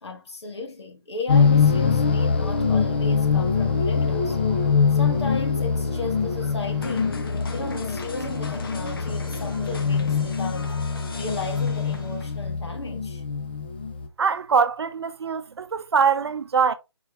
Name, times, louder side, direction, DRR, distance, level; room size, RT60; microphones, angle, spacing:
voice 1, 0.0-4.4 4.9-7.2 7.5-10.8 11.2-13.2, left 3 dB, 70° left, 1.5 m, -35 dB
sound 1, 1.3-14.1, left 5 dB, 20° left, 0.3 m, -23 dB
sound 2, 1.7-12.1, right 2 dB, 20° right, 1.6 m, -44 dB
sound 3, 6.8-12.5, left 4 dB, 50° left, 0.8 m, -39 dB
voice 2, 14.2-16.7, right 6 dB, 65° right, 0.6 m, -23 dB
4.6 x 3.2 x 2.9 m
hypercardioid pair, 165°, 15 cm